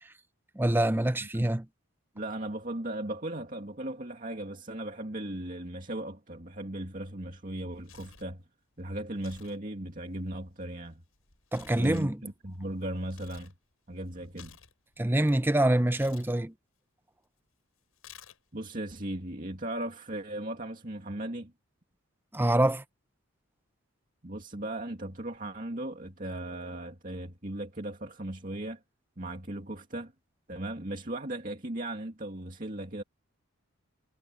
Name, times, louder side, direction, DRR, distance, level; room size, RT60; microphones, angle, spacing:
voice 1, 0.6-1.7 11.5-12.2 15.0-16.5 22.3-22.8, right 1 dB, 10° right, 0.6 m, -25 dB
voice 2, 2.1-8.4 8.8-11.0 11.8-13.5 13.9-14.6 18.5-21.5 24.2-28.8 29.2-30.1 30.5-33.0, right 1 dB, 40° right, 2.3 m, -37 dB
Tearing, 7.5-8.3 9.1-9.6 9.9-13.5 13.9-15.4 15.9-16.3 18.0-18.6, left 5 dB, 80° left, 6.7 m, -53 dB
head